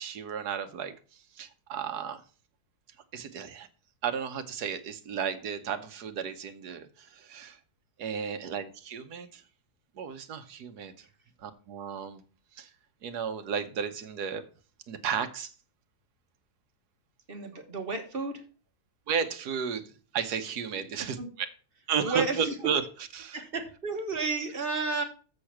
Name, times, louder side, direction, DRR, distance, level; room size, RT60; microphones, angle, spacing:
voice 1, 0.0-2.2 3.1-3.7 4.0-7.6 8.0-9.4 9.9-11.1 11.4-12.2 12.5-12.7 13.0-14.4 14.9-15.5 19.1-21.5 21.9-22.9 23.1-23.4, right 7 dB, 85° right, 1.5 m, -33 dB
voice 2, 17.3-18.4 21.2-21.3 22.0-22.5 23.3-25.0, right 3 dB, 40° right, 1.6 m, -32 dB
7.5 x 6.5 x 5.9 m
omnidirectional pair, 1.6 m